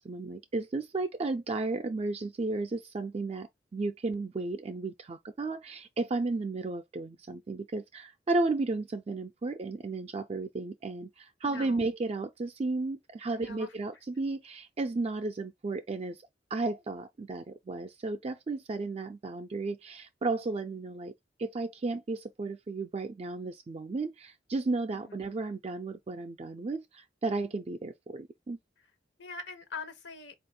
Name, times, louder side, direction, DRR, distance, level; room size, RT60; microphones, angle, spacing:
voice 1, 0.0-16.2 16.5-21.1 21.4-28.6, right 3 dB, 35° right, 0.4 m, -33 dB
voice 2, 11.5-11.9 13.3-13.7 24.9-25.0 29.2-30.3, left 4 dB, 75° left, 0.9 m, -42 dB
4.2 x 2.4 x 3.7 m
head